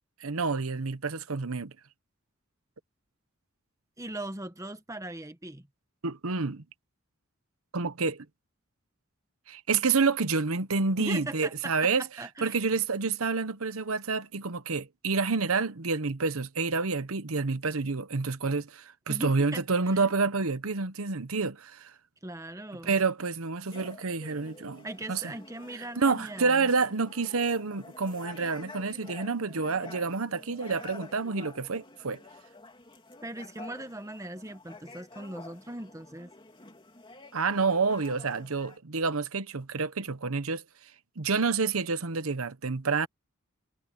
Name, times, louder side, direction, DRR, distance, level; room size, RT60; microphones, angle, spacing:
voice 1, 0.2-1.7 6.0-6.6 7.7-8.2 9.5-12.1 12.4-21.9 22.8-25.3 25.8-32.2 37.3-40.6 41.2-43.1, right 4 dB, 90° right, 1.0 m, -28 dB
voice 2, 4.0-5.7 11.0-11.7 12.2-12.6 19.1-19.6 19.9-20.1 22.2-22.9 24.8-26.7 33.2-36.3, right 1 dB, 15° right, 1.2 m, -39 dB
sound 1, 23.7-38.8, left 2 dB, 25° left, 3.1 m, -49 dB
head